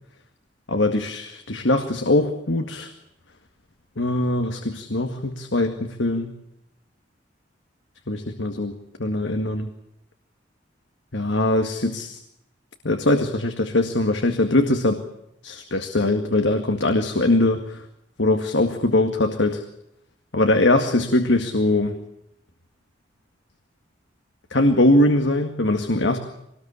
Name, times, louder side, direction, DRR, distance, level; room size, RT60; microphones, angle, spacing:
voice 1, 0.7-2.9 4.0-6.3 8.1-9.7 11.1-12.2 12.8-15.0 15.4-17.8 18.2-19.6 20.3-22.0 24.5-26.2, left 2 dB, 80° left, 6 dB, 2.0 m, -21 dB
24.0 x 19.5 x 8.4 m, 0.82 s
head